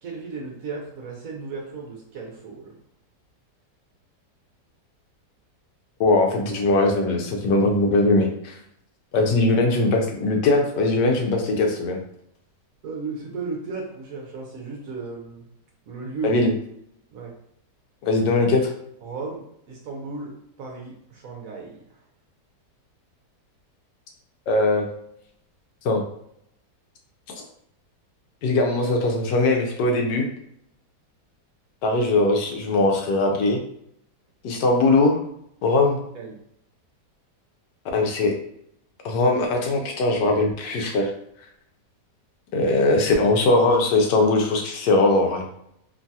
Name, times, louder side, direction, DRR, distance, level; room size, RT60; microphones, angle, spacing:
voice 1, 0.0-2.8 12.8-15.5 15.9-16.4 17.1-17.3 19.0-22.0 36.1-36.4, right 4 dB, 65° right, -1 dB, 0.9 m, -35 dB
voice 2, 6.0-8.6 9.1-12.0 16.2-16.5 18.0-18.7 24.5-24.9 25.8-26.0 28.4-30.3 31.8-33.6 34.4-35.2 35.6-36.0 37.9-38.3 39.0-41.1 42.5-45.5, left 2 dB, 85° left, 2 dB, 1.3 m, -20 dB
3.1 x 2.7 x 2.2 m, 0.73 s
omnidirectional pair, 1.8 m